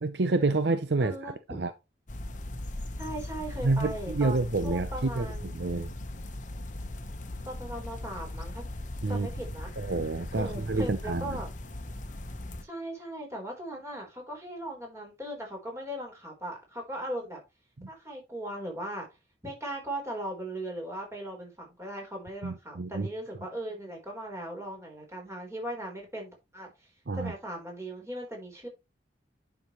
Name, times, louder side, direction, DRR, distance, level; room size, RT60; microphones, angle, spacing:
voice 1, 0.0-1.3 1.6-1.7 3.6-5.3 5.5-5.9 9.0-9.3 9.8-11.4 22.4-23.1 27.1-27.3, right 3 dB, 65° right, 0.7 m, -28 dB
voice 2, 1.0-1.6 3.0-5.9 7.4-8.6 9.1-9.7 10.4-11.5 12.6-17.4 17.9-19.1 19.4-26.7 27.1-28.7, right 1 dB, 15° right, 3.9 m, -38 dB
sound 1, 2.1-12.6, left 1 dB, 45° left, 1.1 m, -39 dB
10.0 x 6.1 x 3.1 m
head